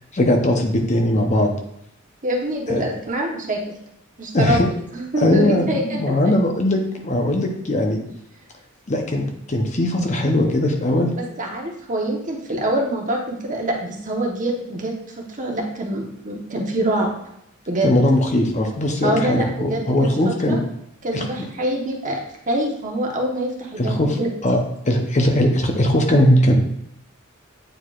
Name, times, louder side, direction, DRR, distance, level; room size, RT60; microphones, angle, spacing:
voice 1, 0.1-1.5 2.7-2.8 4.3-4.7 5.2-8.0 8.9-11.1 17.8-20.6 21.1-21.3 23.8-24.2 24.4-26.5, left 1 dB, 35° left, 2 dB, 0.8 m, -19 dB
voice 2, 2.2-3.6 4.2-4.6 4.9-6.0 11.1-14.9 15.4-17.1 17.7-17.9 19.0-20.6 21.0-22.2 22.5-24.3, right 1 dB, 40° right, 0 dB, 1.2 m, -25 dB
8.9 x 4.7 x 2.5 m, 0.75 s
head